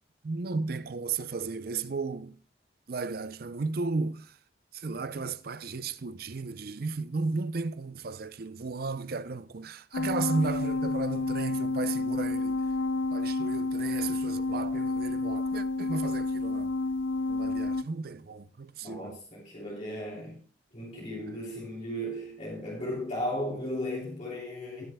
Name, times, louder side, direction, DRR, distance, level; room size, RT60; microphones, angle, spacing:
voice 1, 0.2-2.4 2.9-4.4 4.7-12.6 13.1-16.7 17.3-19.2, right 4 dB, 55° right, 0.6 m, -34 dB
sound 1, 9.9-17.8, left 3 dB, 80° left, 0.4 m, -30 dB
voice 2, 18.8-20.4 20.7-24.8, equal, 40° left, 3.1 m, -35 dB
20.5 x 7.6 x 2.3 m
head